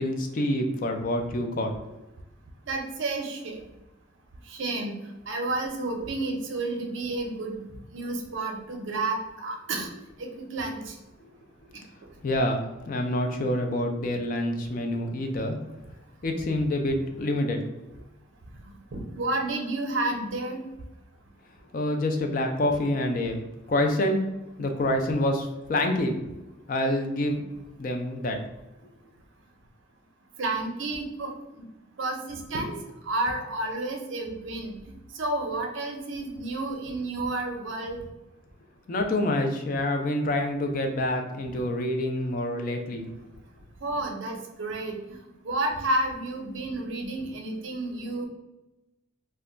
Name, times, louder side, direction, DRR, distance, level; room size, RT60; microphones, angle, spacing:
voice 1, 0.0-1.7 12.2-15.6 16.2-17.6 21.7-24.2 24.6-26.2 26.7-27.5 27.8-28.4 38.9-43.1, left 1 dB, 40° left, 4 dB, 0.3 m, -27 dB
voice 2, 2.7-3.6 4.5-7.7 7.9-9.9 10.2-10.9 18.9-20.6 30.4-31.6 32.0-32.7 33.0-38.0 43.8-48.3, right 2 dB, 70° right, 3 dB, 0.5 m, -31 dB
2.2 x 2.2 x 3.7 m, 0.99 s
head